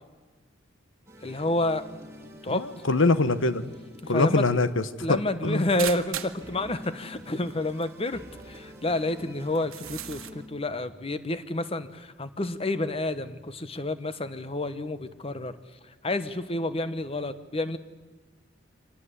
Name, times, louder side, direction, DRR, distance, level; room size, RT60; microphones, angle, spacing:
sound 1, 1.1-10.5, equal, 15° right, 2.8 m, -48 dB
voice 1, 1.2-1.8 2.4-2.7 4.0-4.4 5.0-15.6 16.0-17.8, left 2 dB, 30° left, 12 dB, 1.0 m, -29 dB
voice 2, 2.5-3.7 4.1-4.8 5.1-5.7, left 3 dB, 70° left, 13 dB, 1.1 m, -24 dB
sound 2, 5.8-6.4 7.5-7.6 7.8-7.9 8.4-8.5 9.5-10.3, right 11 dB, 90° right, 1.3 m, -36 dB
25.0 x 19.0 x 8.3 m, 1.3 s
head